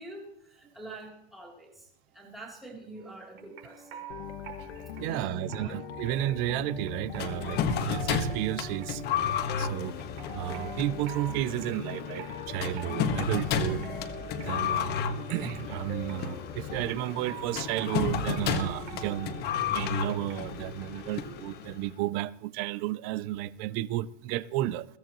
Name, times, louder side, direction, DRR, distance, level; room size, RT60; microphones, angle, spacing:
voice 1, 0.0-1.9 2.1-4.0 5.0-5.8, right 2 dB, ahead, 3.1 m, -46 dB
sound 1, 2.9-20.6, right 8 dB, 60° right, 5.5 m, -47 dB
sound 2, 4.1-16.9, left 9 dB, 90° left, 2.0 m, -42 dB
voice 2, 5.0-9.2 9.6-9.9 10.3-13.9 14.5-15.0 15.3-19.4 19.7-24.9, right 14 dB, 30° right, 0.4 m, -32 dB
sound 3, 7.2-21.9, left 7 dB, 30° left, 1.4 m, -32 dB
21.5 x 15.5 x 3.0 m
supercardioid pair, 160°, 32 cm